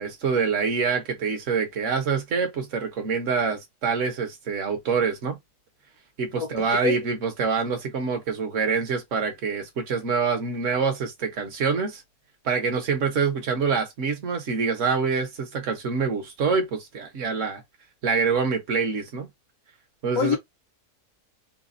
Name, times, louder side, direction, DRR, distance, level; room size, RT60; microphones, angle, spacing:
voice 1, 0.0-5.4 6.2-12.0 12.4-17.6 18.0-19.3 20.0-20.4, right 5 dB, 55° right, 1.3 m, -26 dB
voice 2, 6.4-6.9 20.2-20.4, left 6 dB, 65° left, 1.1 m, -26 dB
4.1 x 2.2 x 2.5 m
omnidirectional pair, 1.7 m